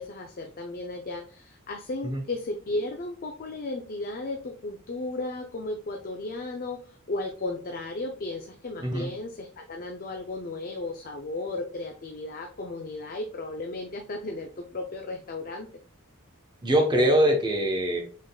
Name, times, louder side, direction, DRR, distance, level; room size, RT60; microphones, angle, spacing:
voice 1, 0.0-15.7, left 2 dB, 40° left, 3 dB, 0.5 m, -35 dB
voice 2, 8.8-9.1 16.6-18.0, right 1 dB, 20° right, 3 dB, 0.9 m, -23 dB
6.3 x 3.6 x 2.3 m, 0.42 s
head